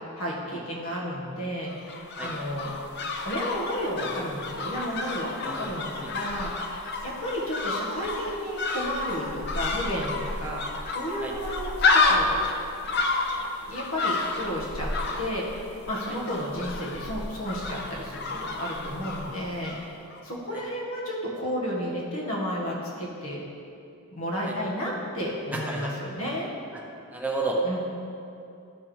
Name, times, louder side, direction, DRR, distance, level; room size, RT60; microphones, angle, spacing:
voice 1, 0.1-2.7 3.2-12.4 12.8-12.9 13.3-14.9 15.2-15.6 15.9-19.9 20.2-23.4 24.1-26.5 27.6-27.8, equal, 85° left, -4 dB, 1.9 m, -32 dB
sound 1, 1.7-19.9 20.1-20.2, left 3 dB, 50° left, 0.6 m, -30 dB
voice 2, 25.5-25.9 27.1-27.6, right 2 dB, 5° right, -2 dB, 0.8 m, -31 dB
11.5 x 6.3 x 3.5 m, 2.6 s
head